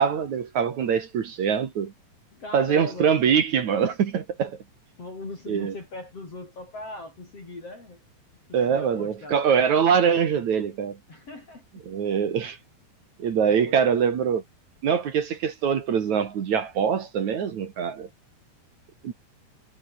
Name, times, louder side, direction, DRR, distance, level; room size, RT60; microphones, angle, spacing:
voice 1, 0.0-1.9 2.5-4.6 5.5-5.7 8.5-11.0 11.9-12.6 13.2-14.4 14.8-18.1 19.0-19.1, right 7 dB, 50° right, 2.8 m, -23 dB
voice 2, 2.3-3.1 5.0-8.0 8.5-9.4 11.1-11.7 13.5-13.8, left 2 dB, 35° left, 6.6 m, -39 dB
omnidirectional pair, 4.8 m